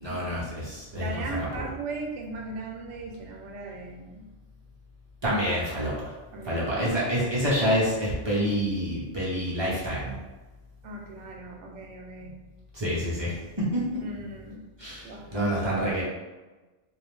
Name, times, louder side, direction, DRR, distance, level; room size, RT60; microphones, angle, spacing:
voice 1, 0.0-1.5 5.2-6.1 6.4-10.2 12.2-12.3 12.7-14.0 14.8-16.0, equal, 35° right, -8 dB, 0.4 m, -28 dB
voice 2, 0.6-4.2 6.3-7.0 10.8-12.4 14.0-14.6 15.0-15.6, right 3 dB, 70° right, 0 dB, 0.9 m, -38 dB
2.3 x 2.0 x 3.1 m, 1.2 s
omnidirectional pair, 1.3 m